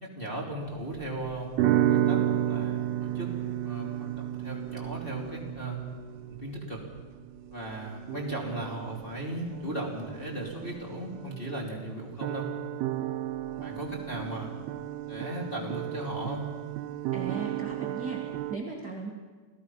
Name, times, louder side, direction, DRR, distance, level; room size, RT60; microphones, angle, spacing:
voice 1, 0.0-3.3 3.6-5.8 6.3-6.8 7.5-12.5 13.6-14.5 15.1-16.4, right 1 dB, 15° left, -3 dB, 2.2 m, -37 dB
sound 1, 0.6-11.9 12.2-18.6, right 12 dB, 80° right, 2.4 m, -33 dB
voice 2, 17.1-18.2 18.5-19.1, right 4 dB, 45° right, -1 dB, 1.3 m, -37 dB
29.0 x 17.0 x 5.6 m, 1.4 s
omnidirectional pair, 5.2 m